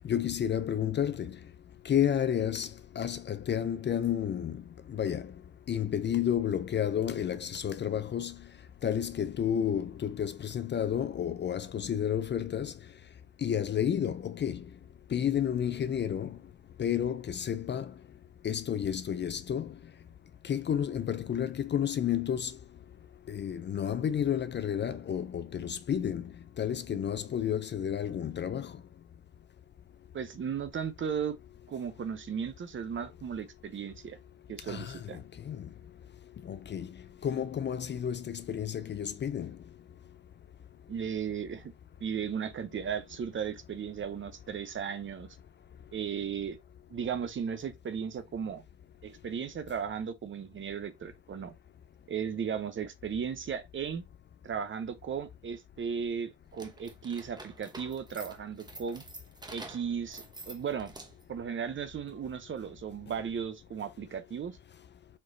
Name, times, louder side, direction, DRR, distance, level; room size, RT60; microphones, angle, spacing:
voice 1, 0.0-1.4 1.8-2.7 3.0-5.3 5.7-8.4 8.8-12.7 13.4-14.7 15.1-16.4 16.8-17.9 18.4-19.7 20.4-22.6 23.3-28.7 34.7-35.7 36.4-36.9 37.2-39.6, left 9 dB, 35° left, 0.4 m, -31 dB
voice 2, 30.1-31.4 31.7-34.2 34.5-35.2 40.9-41.7 42.0-45.4 45.9-46.6 46.9-48.6 49.0-51.5 52.1-54.0 54.4-59.0 59.5-60.9 61.3-64.6, right 7 dB, 40° right, 0.7 m, -36 dB
sound 1, 56.5-61.4, right 2 dB, 15° right, 0.8 m, -48 dB
4.3 x 3.0 x 2.6 m
cardioid pair, 90°, 30 cm